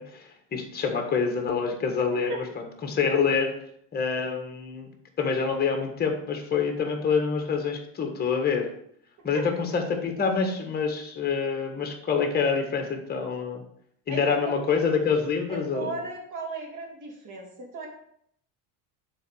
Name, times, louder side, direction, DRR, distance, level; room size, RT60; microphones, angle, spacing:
voice 1, 0.0-3.5 3.9-4.9 5.2-8.7 9.2-13.6 14.1-15.9, left 5 dB, 25° left, 3 dB, 1.5 m, -26 dB
voice 2, 14.1-14.5 15.5-17.9, right 3 dB, 45° right, 0 dB, 2.5 m, -35 dB
6.8 x 4.0 x 6.3 m, 0.69 s
cardioid pair, 125°, 41 cm